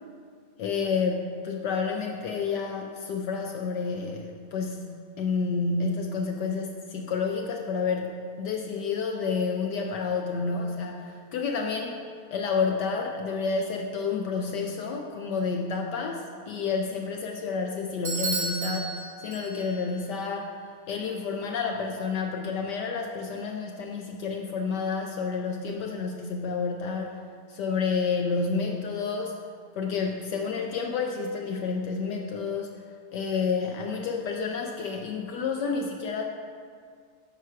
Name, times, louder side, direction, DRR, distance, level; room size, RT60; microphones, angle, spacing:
voice 1, 0.6-8.1 8.4-12.0 12.3-19.0 19.2-20.6 20.9-27.1 27.5-29.3 29.7-32.7 33.1-36.2, left 5 dB, 75° left, 2 dB, 0.9 m, -30 dB
Bell / Doorbell, 18.0-19.9, right 3 dB, 40° right, 1.0 m, -33 dB
9.0 x 4.7 x 5.7 m, 2.1 s
omnidirectional pair, 2.4 m